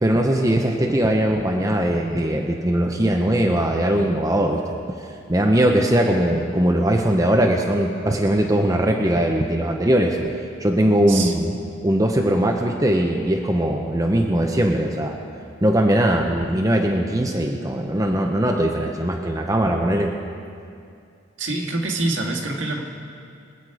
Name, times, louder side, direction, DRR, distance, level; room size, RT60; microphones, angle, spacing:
voice 1, 0.0-4.8 5.3-10.2 10.6-11.5 11.8-15.2 15.6-20.1, right 1 dB, 15° right, 1 dB, 0.8 m, -20 dB
voice 2, 21.4-22.8, right 2 dB, 65° right, 1 dB, 1.9 m, -25 dB
24.0 x 8.4 x 4.9 m, 2.4 s
head